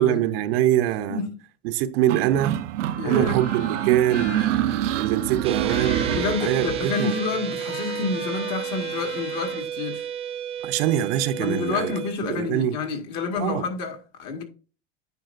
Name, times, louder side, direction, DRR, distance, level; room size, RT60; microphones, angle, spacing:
voice 1, 0.0-1.2 1.6-2.6 3.0-4.5 5.0-6.1 6.4-7.2 10.6-11.9 12.3-12.8 13.4-13.7, right 12 dB, 55° right, 0.8 m, -23 dB
sound 1, 2.1-6.9, right 12 dB, 90° right, 0.8 m, -26 dB
Trumpet, 2.9-9.6, left 4 dB, 65° left, 4.4 m, -40 dB
voice 2, 3.0-3.4 6.1-10.1 11.4-14.4, left 5 dB, 50° left, 2.0 m, -29 dB
sound 2, 5.4-12.1, right 9 dB, 15° right, 0.4 m, -32 dB
9.2 x 5.4 x 2.6 m
supercardioid pair, 140°, 35 cm